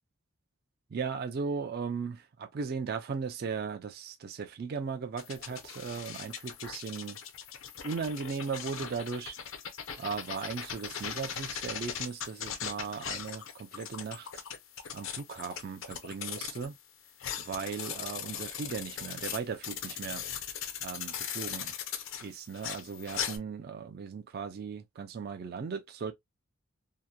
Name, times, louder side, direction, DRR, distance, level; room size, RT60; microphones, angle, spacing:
voice 1, 0.9-7.2 7.8-9.4 10.0-14.4 14.9-16.7 17.4-20.2 20.8-21.7 22.2-26.1, right 5 dB, 45° right, 0.3 m, -37 dB
sound 1, 5.2-16.7 17.1-23.4, left 8 dB, 60° left, 0.5 m, -39 dB
2.8 x 2.1 x 2.2 m
head